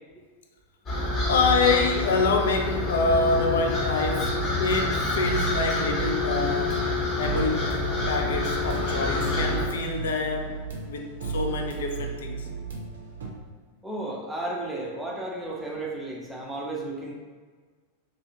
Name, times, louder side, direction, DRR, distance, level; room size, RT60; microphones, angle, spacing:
sound 1, 0.9-9.7, left 3 dB, 30° left, 0.8 m, -27 dB
voice 1, 1.2-6.9 7.2-7.7 8.1-12.5, left 3 dB, 60° left, 3 dB, 0.3 m, -26 dB
sound 2, 4.2-13.3, right 6 dB, 65° right, 0.5 m, -34 dB
voice 2, 13.8-17.1, right 2 dB, 5° right, -3 dB, 0.6 m, -33 dB
2.6 x 2.3 x 2.8 m, 1.5 s
figure-of-eight pair, 90°, 0 cm